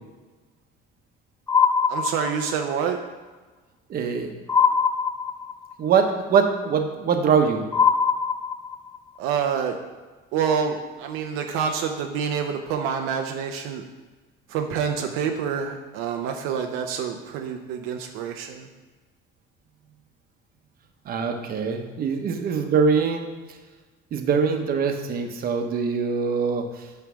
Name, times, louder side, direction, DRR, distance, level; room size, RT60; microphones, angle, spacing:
sound 1, 1.5-2.7 4.5-5.7 7.7-9.0, left 6 dB, 15° left, 0.4 m, -22 dB
voice 1, 1.9-3.0 9.2-9.8 10.3-13.8 14.5-18.7, right 7 dB, 80° right, 4 dB, 0.7 m, -27 dB
voice 2, 3.9-4.4 5.8-7.7 21.1-23.2 24.1-26.7, right 6 dB, 45° right, 5 dB, 1.0 m, -23 dB
9.3 x 3.3 x 6.1 m, 1.3 s
cardioid pair, 130°, 21 cm